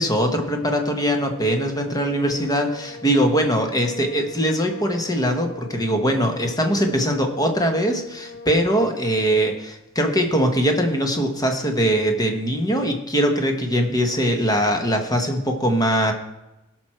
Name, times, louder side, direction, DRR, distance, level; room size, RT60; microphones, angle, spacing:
voice 1, 0.0-16.1, equal, 15° left, 4 dB, 1.3 m, -21 dB
sound 1, 1.0-9.7, left 3 dB, 50° left, 0.9 m, -41 dB
17.0 x 6.1 x 4.4 m, 0.96 s
head